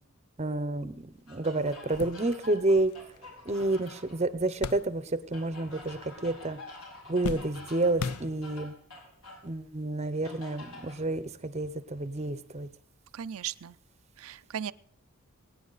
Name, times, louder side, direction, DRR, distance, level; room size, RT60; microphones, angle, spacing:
voice 1, 0.4-2.9 3.5-6.6 7.1-8.7 9.4-12.7, right 2 dB, 30° right, 13 dB, 0.7 m, -29 dB
sound 1, 1.2-1.3 1.7-5.4 5.7-6.4 6.7-8.8 9.5-9.6 10.9-11.1, left 5 dB, 90° left, 0.5 m, -40 dB
sound 2, 1.3-4.2 5.3-9.5 10.2-11.0, left 2 dB, 70° left, 4.5 m, -48 dB
voice 2, 13.1-13.8 14.2-14.7, right 9 dB, 75° right, 13 dB, 0.4 m, -36 dB
22.5 x 9.4 x 4.0 m, 0.62 s
head